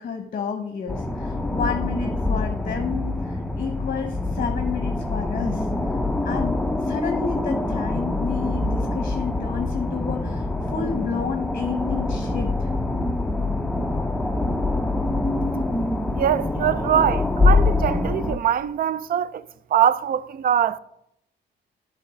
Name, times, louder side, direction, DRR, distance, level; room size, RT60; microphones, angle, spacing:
voice 1, 0.0-5.7 6.2-12.7, left 6 dB, 45° left, 0.9 m, -30 dB
sound 1, 0.9-18.4, left 2 dB, 5° left, 0.6 m, -25 dB
voice 2, 16.1-19.4 19.7-20.8, right 9 dB, 45° right, 0.4 m, -22 dB
8.9 x 3.4 x 6.8 m
cardioid pair, 90°, 20 cm